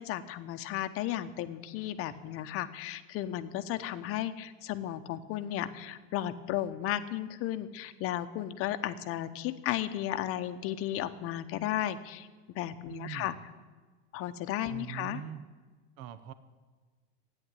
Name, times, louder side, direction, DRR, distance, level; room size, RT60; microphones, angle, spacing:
voice 1, 0.0-13.3 14.1-15.2, left 12 dB, 40° left, 11 dB, 1.0 m, -34 dB
voice 2, 12.9-13.4 14.7-15.4 16.0-16.3, right 10 dB, 45° right, 12 dB, 1.0 m, -42 dB
14.0 x 9.9 x 9.1 m, 1.4 s
supercardioid pair, 140°, 34 cm